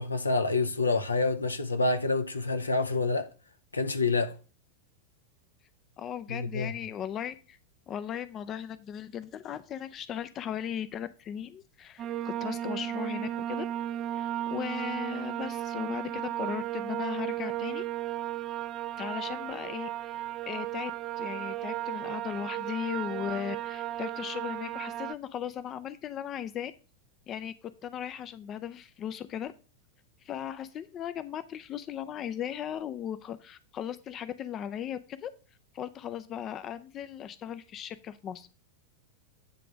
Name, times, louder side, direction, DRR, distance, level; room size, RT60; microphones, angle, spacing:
voice 1, 0.0-3.3 3.7-4.4 6.3-6.7, left 3 dB, 80° left, 0.8 m, -27 dB
voice 2, 6.0-7.6 7.9-13.7 14.1-17.8 19.0-20.2 20.5-20.9 21.2-26.7 27.3-27.5 27.8-29.5 30.2-35.3 35.7-38.5, left 9 dB, 30° left, 0.5 m, -37 dB
sound 1, 12.0-25.1, right 13 dB, 30° right, 0.4 m, -35 dB
9.0 x 3.3 x 6.1 m
figure-of-eight pair, 90°, 0 cm